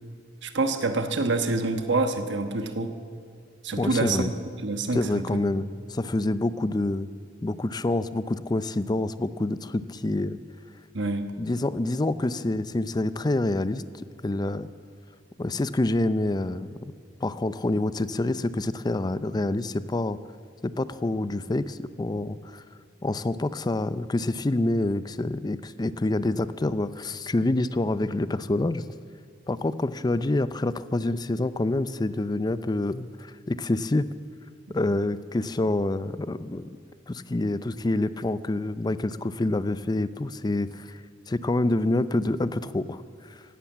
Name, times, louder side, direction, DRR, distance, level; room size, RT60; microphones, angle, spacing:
voice 1, 0.4-3.0 3.6-5.4 10.9-11.3, right 3 dB, 65° right, 7 dB, 1.2 m, -27 dB
voice 2, 3.8-4.3 4.9-7.1 7.4-10.4 11.4-13.8 14.2-14.7 15.4-16.9 17.2-20.2 20.6-22.6 23.0-28.8 29.5-34.1 34.7-36.6 37.1-41.0 41.3-43.4, left 2 dB, 20° left, 14 dB, 0.4 m, -27 dB
16.5 x 12.0 x 7.3 m, 2.3 s
head